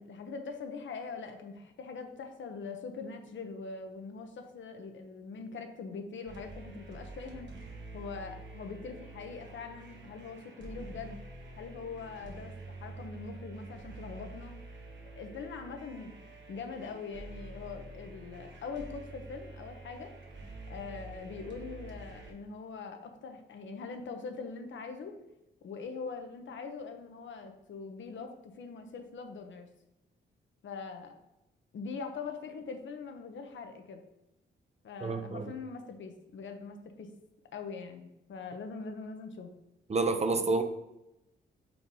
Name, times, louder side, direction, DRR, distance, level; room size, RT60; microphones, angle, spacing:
voice 1, 0.0-7.5 7.9-11.2 11.6-14.5 15.2-16.1 16.5-20.1 20.7-25.1 25.6-29.7 30.6-31.1 31.7-34.0 34.8-37.1 37.5-39.5, left 4 dB, 65° left, 5 dB, 0.9 m, -42 dB
sound 1, 6.3-22.3, right 2 dB, 60° right, 1.4 m, -47 dB
voice 2, 35.0-35.5 39.9-40.6, right 3 dB, 30° right, 8 dB, 0.7 m, -29 dB
4.6 x 3.9 x 5.4 m, 0.90 s
cardioid pair, 70°, 21 cm